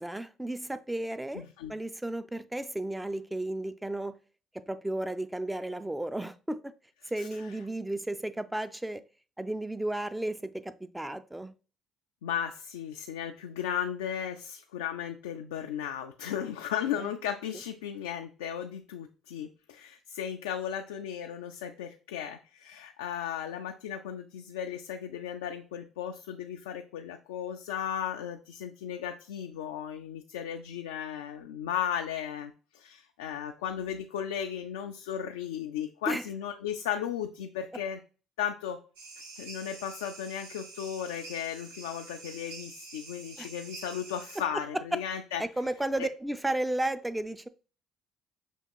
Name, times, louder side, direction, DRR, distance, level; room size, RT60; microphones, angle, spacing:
voice 1, 0.0-4.1 4.5-6.7 7.1-9.0 9.4-11.5 17.0-17.1 36.1-36.2 43.4-43.5 45.4-47.5, right 1 dB, 10° right, 0.4 m, -33 dB
voice 2, 1.3-1.7 7.2-7.5 12.2-38.0 38.4-38.8 39.4-45.4 46.0-46.1, left 9 dB, 80° left, 0.3 m, -35 dB
sound 1, 39.0-44.4, right 3 dB, 80° right, 0.8 m, -47 dB
6.1 x 2.8 x 2.3 m
hypercardioid pair, 55°, 0 cm